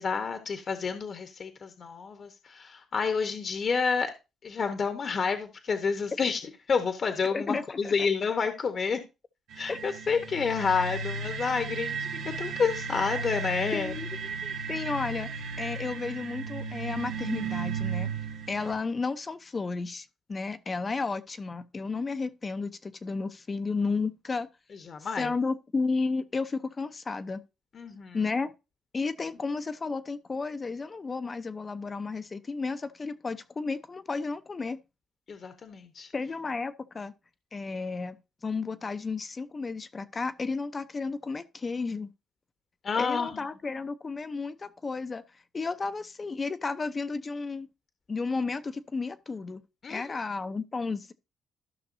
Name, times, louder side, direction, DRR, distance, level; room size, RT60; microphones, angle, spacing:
voice 1, 0.0-4.1 4.4-6.4 6.7-9.0 9.6-13.9 24.9-25.3 27.7-28.2 35.3-36.1 42.8-43.4 49.8-50.0, left 5 dB, 50° left, 1.0 m, -29 dB
voice 2, 7.3-8.1 9.7-9.8 13.7-18.1 18.5-24.5 25.2-27.4 28.1-28.5 28.9-34.8 36.1-37.1 37.5-42.1 43.0-45.2 45.5-47.7 48.1-49.6 49.9-51.1, left 4 dB, 30° left, 0.7 m, -33 dB
sound 1, 9.5-18.7, right 5 dB, 75° right, 1.0 m, -35 dB
14.0 x 5.9 x 2.6 m
cardioid pair, 90°, 0 cm